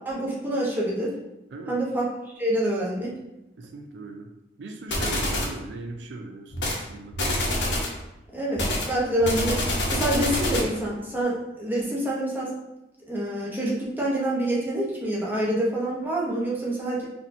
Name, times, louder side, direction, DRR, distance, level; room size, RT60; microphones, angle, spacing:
voice 1, 0.0-1.1 1.7-2.1 2.4-3.1 8.3-9.6 9.9-12.5 13.1-17.0, right 1 dB, 10° right, -5 dB, 0.8 m, -26 dB
voice 2, 3.6-4.3 4.6-7.2, right 2 dB, 85° right, 4 dB, 0.4 m, -39 dB
sound 1, 4.9-5.6 6.5-6.8 7.1-8.0 8.6-10.8, left 1 dB, 85° left, 0.9 m, -26 dB
4.1 x 2.8 x 2.6 m, 0.91 s
head